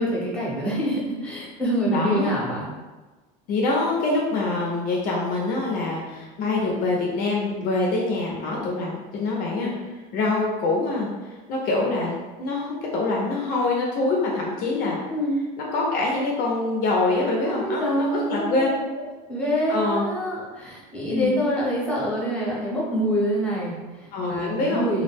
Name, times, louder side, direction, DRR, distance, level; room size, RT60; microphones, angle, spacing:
voice 1, 0.0-2.7 15.1-15.4 17.6-18.8 19.3-25.0, equal, 5° left, -6 dB, 0.8 m, -26 dB
voice 2, 1.9-2.3 3.5-15.0 15.6-18.7 18.9-19.1 19.7-20.0 21.1-21.3 24.1-24.9, left 2 dB, 50° left, -2 dB, 0.5 m, -25 dB
2.2 x 2.0 x 3.3 m, 1.2 s
cardioid pair, 140°, 19 cm